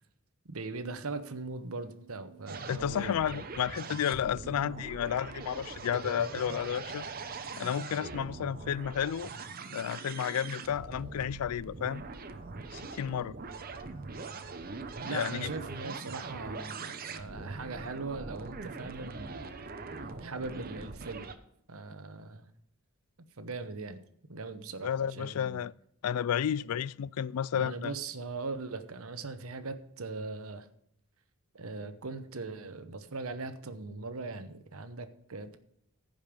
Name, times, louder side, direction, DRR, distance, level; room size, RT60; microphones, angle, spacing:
voice 1, 0.4-3.4 15.0-19.7 20.2-21.3 21.7-22.5 23.4-24.0 24.3-25.6 27.5-30.7 31.5-35.6, right 3 dB, 75° right, 1.0 m, -40 dB
sound 1, 0.8-17.5, right 7 dB, 20° left, 1.5 m, -61 dB
sound 2, 2.5-21.3, right 4 dB, 40° right, 0.8 m, -42 dB
voice 2, 2.7-7.0 7.6-9.3 9.7-12.0 12.7-13.3 15.0-15.5 24.8-25.7 26.0-28.0, left 9 dB, 85° left, 0.4 m, -32 dB
15.0 x 5.3 x 5.2 m
head